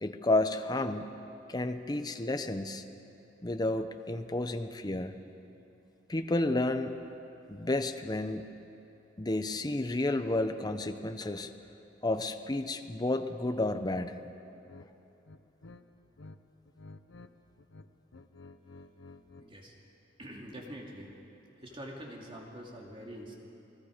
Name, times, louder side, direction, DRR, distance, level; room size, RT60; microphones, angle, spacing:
voice 1, 0.0-1.2 1.5-2.8 3.4-5.1 6.1-6.9 7.5-8.5 9.2-11.5 12.0-14.2, left 2 dB, 20° left, 8 dB, 0.8 m, -31 dB
sound 1, 14.6-14.9 15.2-16.4 16.6-17.3 17.6-19.5, left 3 dB, 85° left, 0.8 m, -51 dB
voice 2, 19.4-19.7 20.2-21.1 21.6-23.4, equal, 30° right, -1 dB, 2.5 m, -45 dB
29.0 x 19.0 x 5.1 m, 2.9 s
head